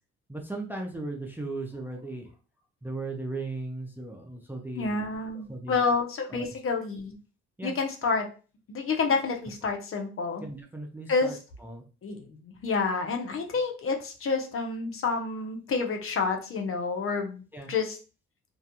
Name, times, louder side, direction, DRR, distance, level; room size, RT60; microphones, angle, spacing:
voice 1, 0.3-2.3 2.8-5.0 5.5-5.8 6.3-6.5 7.6-7.7 10.4-11.3 11.6-11.8 17.5-17.7, right 2 dB, 5° right, 2 dB, 0.4 m, -37 dB
voice 2, 4.7-7.1 7.6-8.3 8.7-10.4 11.1-11.4 12.0-17.4 17.7-18.0, left 4 dB, 45° left, 4 dB, 0.6 m, -29 dB
2.3 x 2.2 x 2.8 m, 0.35 s
cardioid pair, 90°, 30 cm